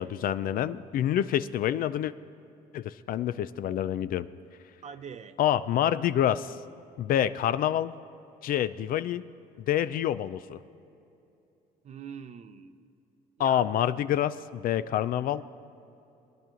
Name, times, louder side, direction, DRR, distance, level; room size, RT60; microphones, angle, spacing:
voice 1, 0.0-2.1 2.7-4.3 5.4-6.6 7.0-7.9 8.4-9.2 9.7-10.6 13.4-15.4, left 11 dB, 60° left, 14 dB, 0.4 m, -27 dB
voice 2, 4.8-5.4 11.8-12.9 13.4-13.7 14.9-15.1, right 7 dB, 40° right, 11 dB, 0.7 m, -44 dB
22.5 x 10.5 x 3.8 m, 2.8 s
cardioid pair, 110°, 17 cm